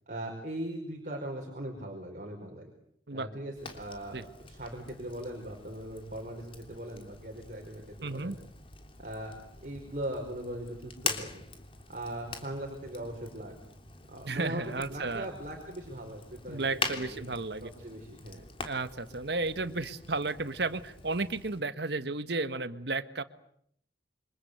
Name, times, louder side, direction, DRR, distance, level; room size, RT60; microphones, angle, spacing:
voice 1, 0.1-2.7 3.1-8.3 9.0-9.3 9.6-11.4 11.9-13.5 14.1-17.2 17.6-18.4, right 1 dB, 45° right, 2 dB, 5.0 m, -40 dB
Fire, 3.6-21.6, left 4 dB, 30° left, 3.3 m, -43 dB
voice 2, 8.0-8.4 14.2-15.3 16.5-17.7 18.6-23.2, right 3 dB, 65° right, 12 dB, 1.4 m, -33 dB
28.5 x 25.5 x 8.2 m, 0.70 s
head